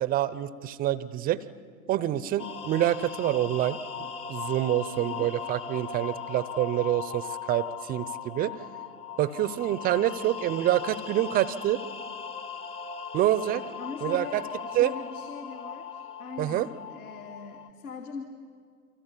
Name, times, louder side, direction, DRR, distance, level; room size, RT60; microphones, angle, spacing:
voice 1, 0.0-1.4 1.9-8.5 9.2-11.8 13.1-13.6 14.0-14.4 14.7-14.9 16.4-16.7, right 13 dB, 20° right, 17 dB, 0.6 m, -27 dB
sound 1, 2.4-17.7, left 6 dB, 15° left, 0.8 m, -39 dB
voice 2, 5.0-5.3 13.8-18.2, left 5 dB, 70° left, 3 dB, 2.5 m, -41 dB
28.5 x 25.0 x 8.3 m, 2.1 s
figure-of-eight pair, 105°, 46 cm